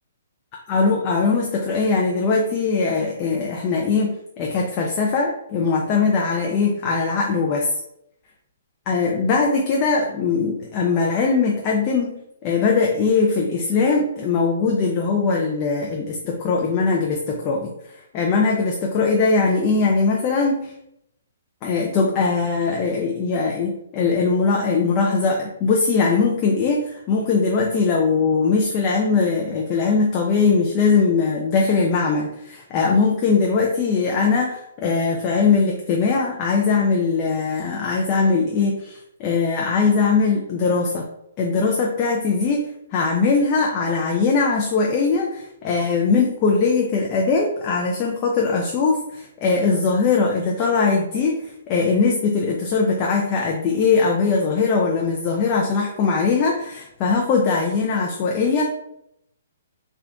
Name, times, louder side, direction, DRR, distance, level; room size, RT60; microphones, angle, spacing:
voice 1, 0.7-7.7 8.9-12.2 12.4-17.7 18.1-20.7 21.6-41.1 41.4-58.6, left 4 dB, 30° left, -1 dB, 0.4 m, -20 dB
3.5 x 2.4 x 3.4 m, 0.78 s
hypercardioid pair, 155°, 0 cm